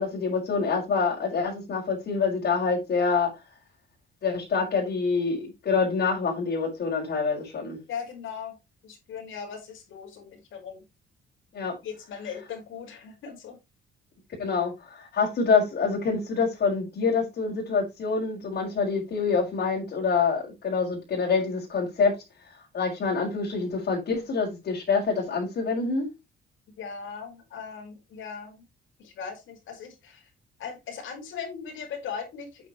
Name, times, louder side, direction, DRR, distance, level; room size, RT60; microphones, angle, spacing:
voice 1, 0.0-3.3 4.2-7.8 11.5-11.8 14.4-22.1 22.7-26.1, left 5 dB, 60° left, 5.2 m, -26 dB
voice 2, 7.9-8.6 8.8-10.8 11.8-13.6 26.8-28.6 29.0-30.3 30.6-32.7, left 6 dB, 80° left, 4.8 m, -38 dB
8.8 x 8.4 x 3.1 m
cardioid pair, 90°, 20 cm